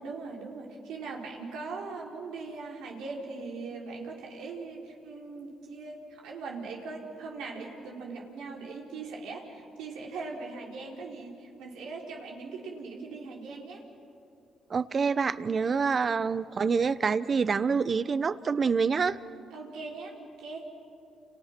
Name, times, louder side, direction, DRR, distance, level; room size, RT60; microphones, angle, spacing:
voice 1, 0.0-13.8 15.9-16.0 19.5-20.7, right 4 dB, 90° right, -1 dB, 4.3 m, -40 dB
voice 2, 14.7-19.2, right 5 dB, 40° right, 15 dB, 0.8 m, -26 dB
29.5 x 29.0 x 6.0 m, 2.5 s
cardioid pair, 90°, 0 cm